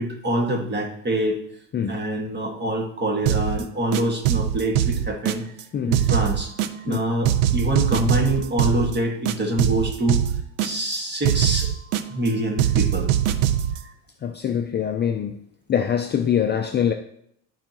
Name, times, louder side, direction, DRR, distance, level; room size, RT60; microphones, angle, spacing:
voice 1, 0.0-1.4 1.9-5.5 5.9-10.3 10.6-11.7 12.1-13.1, right 1 dB, 25° right, 1.9 m, -25 dB
sound 1, 3.3-3.6 3.9-5.6 5.9-7.0 7.2-9.0 9.3-11.0 11.2-12.3 12.6-13.8, right 11 dB, 80° right, 0.7 m, -22 dB
voice 2, 14.2-15.4 15.7-16.9, left 8 dB, 25° left, 0.5 m, -23 dB
13.0 x 4.9 x 3.0 m
supercardioid pair, 110°, 40 cm